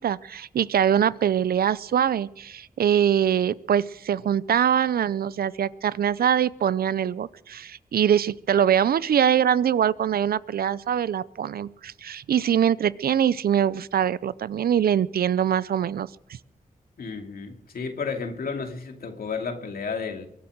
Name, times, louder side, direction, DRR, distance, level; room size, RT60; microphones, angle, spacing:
voice 1, 0.0-16.1, right 9 dB, 90° right, 18 dB, 0.6 m, -23 dB
voice 2, 17.0-20.3, left 5 dB, 80° left, 4 dB, 2.7 m, -32 dB
23.5 x 8.8 x 6.6 m, 0.75 s
cardioid pair, 60°, 15 cm